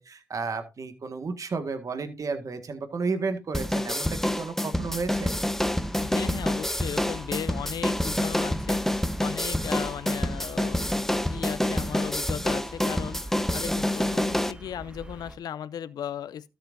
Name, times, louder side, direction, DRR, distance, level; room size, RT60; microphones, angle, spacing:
voice 1, 0.0-5.3, right 4 dB, 60° right, 1.7 m, -32 dB
sound 1, 3.5-14.5, left 1 dB, 5° left, 0.9 m, -27 dB
sound 2, 5.0-15.4, right 1 dB, 15° right, 1.5 m, -43 dB
voice 2, 6.0-16.5, left 9 dB, 80° left, 0.5 m, -37 dB
13.0 x 7.9 x 2.6 m
supercardioid pair, 50°, 7 cm